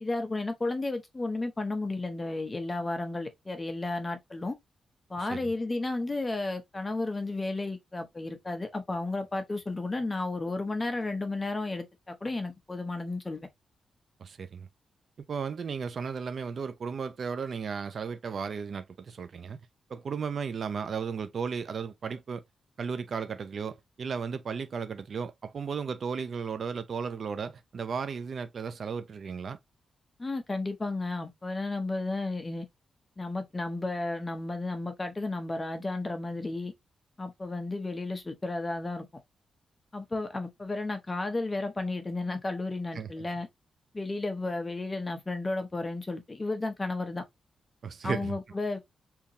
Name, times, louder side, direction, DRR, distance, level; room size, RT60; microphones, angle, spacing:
voice 1, 0.0-4.5 5.1-13.5 30.2-32.7 33.2-36.7 37.2-39.1 39.9-43.5 43.9-47.2 48.0-48.8, left 2 dB, 20° left, 0.8 m, -33 dB
voice 2, 5.2-5.5 14.2-14.7 15.3-19.6 19.9-22.4 22.8-29.6 42.9-43.3 47.8-48.4, right 6 dB, 50° right, 0.3 m, -35 dB
3.6 x 2.8 x 2.6 m
wide cardioid pair, 145°, 0 cm